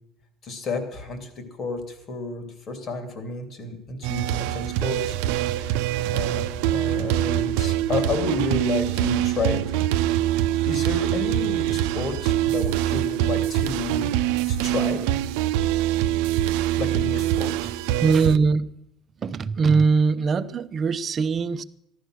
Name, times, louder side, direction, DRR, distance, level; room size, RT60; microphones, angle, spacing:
voice 1, 0.4-5.2 5.5-5.8 6.1-6.4 6.7-9.6 9.9-10.1 10.7-14.1 14.5-15.0 16.8-17.7, left 3 dB, 45° left, 2.7 m, -31 dB
sound 1, 4.0-18.4, right 13 dB, 90° right, 0.6 m, -24 dB
voice 2, 18.0-18.7 19.2-21.6, right 5 dB, 35° right, 0.7 m, -21 dB
14.5 x 11.5 x 6.4 m
cardioid pair, 115°, 0 cm